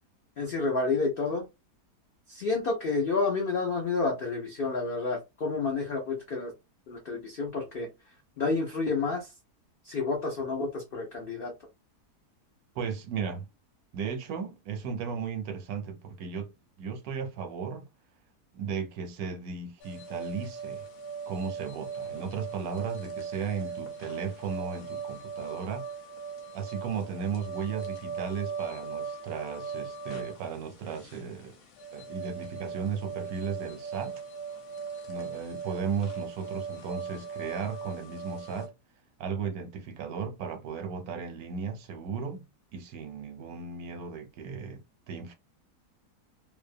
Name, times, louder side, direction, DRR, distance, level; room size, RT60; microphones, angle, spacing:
voice 1, 0.4-1.5 2.3-6.5 6.9-7.9 8.4-9.3 9.8-11.5, left 3 dB, 85° left, 0.5 m, -29 dB
voice 2, 12.8-13.5 13.9-16.5 16.8-17.9 18.5-20.8 21.3-25.9 26.5-31.5 31.9-34.2 35.1-38.7 39.2-44.8 45.1-45.3, right 6 dB, 75° right, 1.0 m, -35 dB
sound 1, 19.8-38.7, right 6 dB, 65° left, 1.0 m, -39 dB
2.7 x 2.0 x 2.5 m
omnidirectional pair, 1.7 m